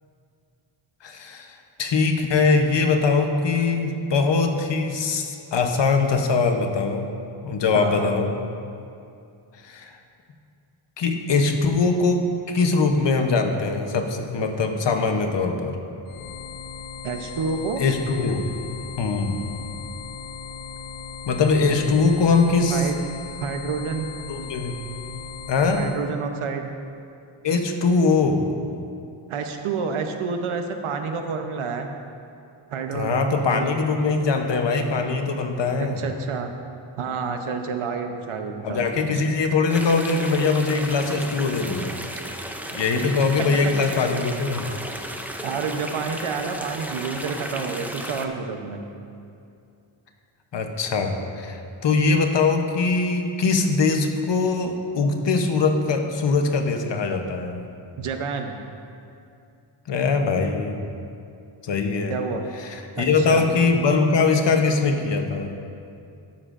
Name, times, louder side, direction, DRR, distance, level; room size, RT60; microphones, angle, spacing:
voice 1, 1.0-7.1 7.4-8.4 9.6-9.9 11.0-15.8 17.8-18.5 19.0-19.4 21.3-22.9 24.3-24.8 25.5-25.8 27.4-28.5 32.9-36.0 38.6-41.9 42.7-44.7 50.5-57.6 59.9-60.8 61.6-62.1 62.6-65.5, left 4 dB, 60° left, 4 dB, 0.9 m, -22 dB
voice 2, 7.7-8.1 14.4-14.5 17.0-17.8 22.7-23.0 23.4-24.1 25.7-26.7 29.3-31.9 32.7-33.7 35.8-36.5 37.0-39.2 43.4-43.7 45.4-48.8 58.0-58.6 62.1-62.5 63.0-63.5, right 5 dB, 80° right, 5 dB, 0.9 m, -29 dB
sound 1, 16.1-26.0, left 6 dB, 85° left, 0.6 m, -37 dB
sound 2, 39.7-48.3, right 1 dB, 5° right, 0.4 m, -34 dB
13.0 x 10.0 x 2.6 m, 2.5 s
wide cardioid pair, 155°, 49 cm